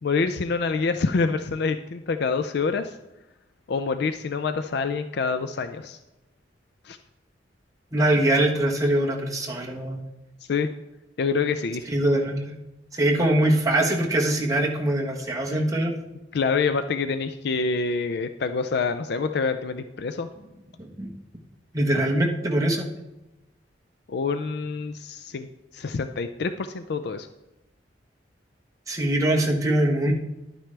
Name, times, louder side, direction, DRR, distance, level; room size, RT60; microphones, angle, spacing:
voice 1, 0.0-3.0 3.7-6.0 6.8-7.0 10.5-10.7 11.2-11.9 15.5-15.6 16.3-20.3 24.1-25.5 25.7-27.3, left 4 dB, 60° left, 10 dB, 0.4 m, -26 dB
voice 2, 7.9-10.0 11.9-12.6 12.9-16.0 20.8-21.1 21.7-22.9 28.9-30.1, right 1 dB, 20° right, -1 dB, 1.2 m, -23 dB
11.5 x 9.0 x 3.3 m, 0.99 s
head